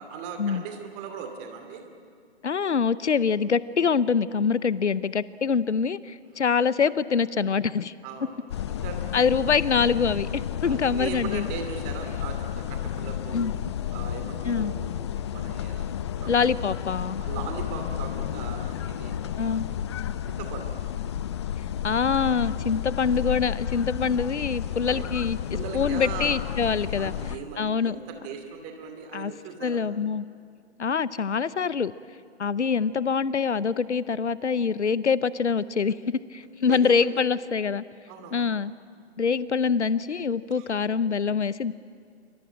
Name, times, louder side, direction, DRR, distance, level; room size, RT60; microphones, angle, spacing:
voice 1, 0.0-1.8 6.3-6.4 8.0-9.1 10.6-13.5 13.9-16.4 17.2-19.8 20.3-20.7 24.9-25.1 25.5-26.4 27.0-29.8 36.6-36.9 38.1-38.4 40.5-40.7, right 6 dB, 20° right, 5 dB, 2.5 m, -39 dB
voice 2, 2.4-7.9 9.1-10.3 10.6-11.5 13.3-13.5 14.5-14.7 16.3-17.2 19.4-19.7 21.8-25.4 25.7-27.1 27.6-28.0 29.1-29.3 29.6-30.2 30.8-31.9 32.4-36.0 36.3-37.8 38.3-38.7 39.2-41.7, left 6 dB, 85° left, 18 dB, 0.8 m, -25 dB
sound 1, 8.5-27.4, left 10 dB, 25° left, 0.6 m, -32 dB
27.0 x 24.5 x 9.0 m, 2.2 s
figure-of-eight pair, 135°, 34 cm